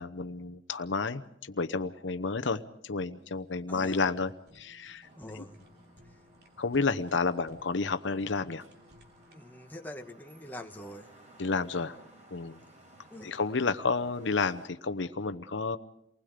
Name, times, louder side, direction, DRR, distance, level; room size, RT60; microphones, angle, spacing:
voice 1, 0.0-5.1 5.3-5.4 6.6-8.6 11.4-12.0 12.3-12.6 13.2-15.8, left 4 dB, 85° left, 11 dB, 0.9 m, -31 dB
Fire, 3.2-9.5, equal, 55° right, 3.2 m, -60 dB
voice 2, 3.7-4.0 5.2-5.6 9.3-11.1 11.7-11.9 13.1-13.3, left 1 dB, 10° left, 3 dB, 1.4 m, -44 dB
sound 1, 5.0-14.7, right 1 dB, 40° right, 4.9 m, -58 dB
29.5 x 20.0 x 5.1 m, 0.76 s
head